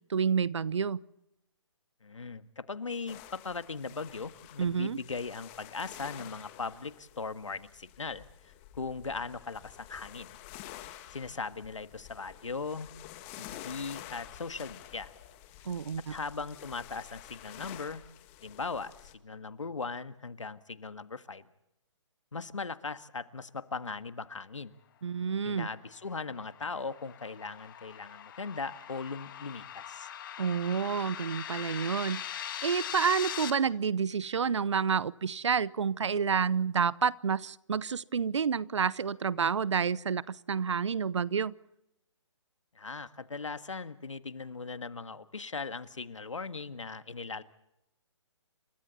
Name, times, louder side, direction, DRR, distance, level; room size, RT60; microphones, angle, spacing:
voice 1, 0.1-1.0 4.6-5.0 15.7-16.2 25.0-25.7 30.4-41.5, right 6 dB, 70° right, 21 dB, 0.8 m, -29 dB
voice 2, 2.0-10.4 11.1-12.9 13.4-15.1 16.1-18.0 18.4-21.5 22.3-24.7 25.4-30.1 42.7-47.4, left 4 dB, 85° left, 11 dB, 1.6 m, -39 dB
sound 1, 3.1-19.1, left 13 dB, 25° left, 1.7 m, -49 dB
sound 2, 25.8-33.5, left 10 dB, 45° left, 1.9 m, -41 dB
29.0 x 25.0 x 4.1 m, 0.88 s
figure-of-eight pair, 145°, 16 cm